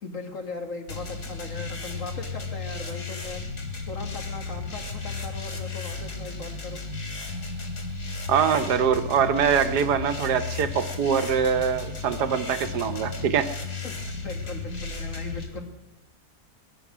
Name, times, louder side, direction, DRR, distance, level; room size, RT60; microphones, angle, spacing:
voice 1, 0.0-3.4 3.9-6.8 13.8-15.7, left 3 dB, 55° left, 4 dB, 2.1 m, -38 dB
sound 1, 0.9-15.5, left 4 dB, 80° left, 2.9 m, -34 dB
voice 2, 8.3-13.5, right 7 dB, 85° right, 9 dB, 1.5 m, -23 dB
21.5 x 10.5 x 6.2 m, 1.1 s
omnidirectional pair, 1.7 m